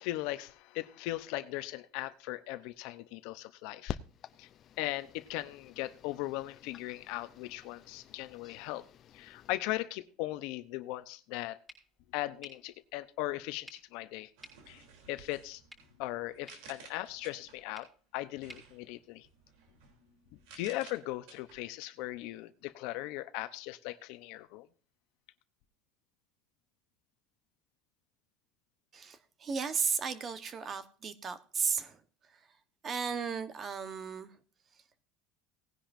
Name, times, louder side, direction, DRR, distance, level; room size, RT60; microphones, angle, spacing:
voice 1, 0.0-4.0 4.4-4.5 4.8-8.8 9.1-11.6 12.1-14.3 14.7-14.8 15.1-15.6 16.0-17.9 18.1-19.3 20.6-24.7, left 17 dB, 70° left, 12 dB, 0.9 m, -38 dB
sound 1, 3.9-9.6, left 9 dB, 40° left, 0.6 m, -48 dB
sound 2, 11.7-19.7, equal, 5° right, 5.5 m, -59 dB
sound 3, 14.4-17.8 18.3-22.2, right 5 dB, 80° right, 3.4 m, -56 dB
voice 2, 28.9-32.0 32.3-32.4 32.8-34.3, right 6 dB, 30° right, 11 dB, 1.2 m, -35 dB
18.0 x 10.5 x 2.7 m, 0.40 s
cardioid pair, 140°, 0 cm